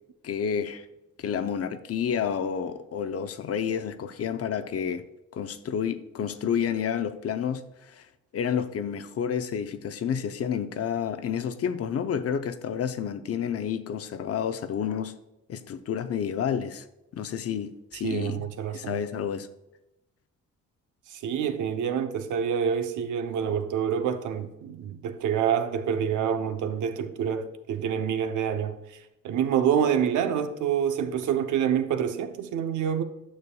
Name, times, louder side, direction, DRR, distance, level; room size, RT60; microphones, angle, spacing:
voice 1, 0.2-0.9 1.2-5.0 5.3-8.0 8.3-15.2 15.5-16.8 17.1-18.5 18.7-19.5, left 8 dB, 50° left, 0.6 m, -30 dB
voice 2, 17.9-19.0 21.1-28.8 29.2-33.0, right 8 dB, 80° right, 0.7 m, -27 dB
9.6 x 6.6 x 2.3 m
cardioid pair, 90°, 30 cm